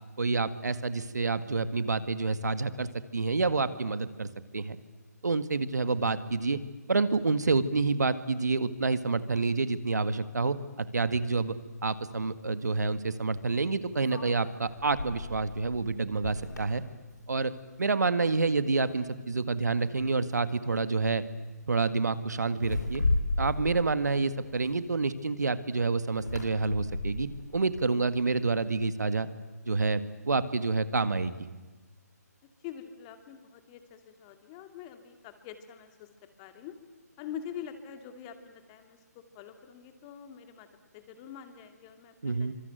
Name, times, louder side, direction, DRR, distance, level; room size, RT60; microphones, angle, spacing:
voice 1, 0.2-4.3 4.5-4.8 5.2-6.6 6.9-11.5 11.8-16.8 17.3-17.5 17.8-21.2 21.7-23.0 23.4-29.3 29.7-31.5 42.2-42.5, right 3 dB, 75° right, 12 dB, 1.9 m, -28 dB
sound 1, 11.8-11.9 14.0-17.7 18.0-18.4 18.8-19.4 20.3-20.5 20.8-21.1 22.5-25.2 26.1-28.5, left 2 dB, 90° left, 6.3 m, -35 dB
voice 2, 32.6-36.8 37.2-40.7 40.9-42.5, left 9 dB, 25° left, 8 dB, 2.4 m, -45 dB
25.5 x 25.5 x 9.2 m, 1.3 s
figure-of-eight pair, 150°, 9 cm